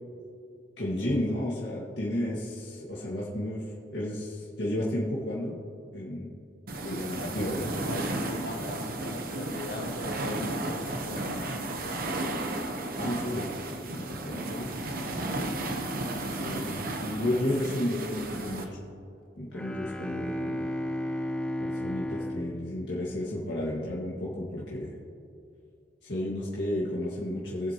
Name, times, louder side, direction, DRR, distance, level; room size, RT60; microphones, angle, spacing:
voice 1, 0.8-5.6 5.9-6.3 6.9-7.7 12.9-13.5 14.0-14.7 16.2-18.9 19.4-20.7 21.6-25.0 26.0-27.7, left 1 dB, 70° left, -6 dB, 1.9 m, -32 dB
sound 1, 6.7-18.6, right 2 dB, 50° right, 1.0 m, -33 dB
voice 2, 6.8-11.6, left 2 dB, 55° left, 5 dB, 0.7 m, -39 dB
Bowed string instrument, 19.5-23.8, left 1 dB, 5° left, 0.6 m, -34 dB
21.0 x 7.9 x 3.0 m, 2.6 s
head